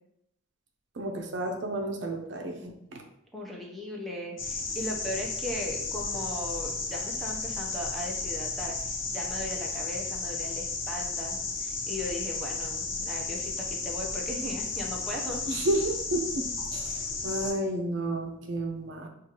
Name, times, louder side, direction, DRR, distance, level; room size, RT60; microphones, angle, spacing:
voice 1, 1.0-3.0 15.5-19.1, right 1 dB, 65° right, 3 dB, 0.6 m, -31 dB
voice 2, 3.3-15.7, left 1 dB, ahead, -2 dB, 0.6 m, -38 dB
sound 1, 4.4-17.5, left 4 dB, 70° left, 0.8 m, -33 dB
6.2 x 2.4 x 2.9 m, 0.79 s
head